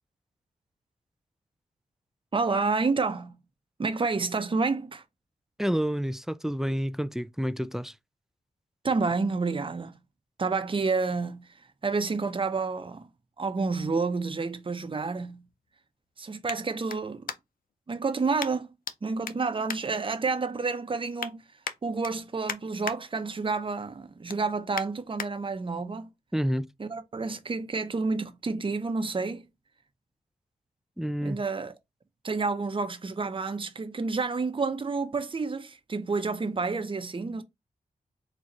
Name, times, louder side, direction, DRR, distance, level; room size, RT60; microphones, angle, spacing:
voice 1, 2.3-3.4 3.8-5.0 8.8-9.9 10.4-13.1 13.4-15.4 16.2-17.3 17.9-18.7 19.0-21.5 21.8-26.1 26.8-29.5 31.2-31.7 32.2-37.4, right 4 dB, 35° right, 0.7 m, -29 dB
voice 2, 5.6-8.0 26.3-26.7 31.0-31.4, equal, 5° right, 0.3 m, -29 dB
sound 1, 15.4-17.7 18.4-19.0 19.2-20.5 20.9-21.3 21.6-23.0 23.4-23.7 24.0-25.3 25.8-25.9, left 7 dB, 70° left, 0.6 m, -39 dB
3.9 x 2.4 x 4.2 m
cardioid pair, 60°, 15 cm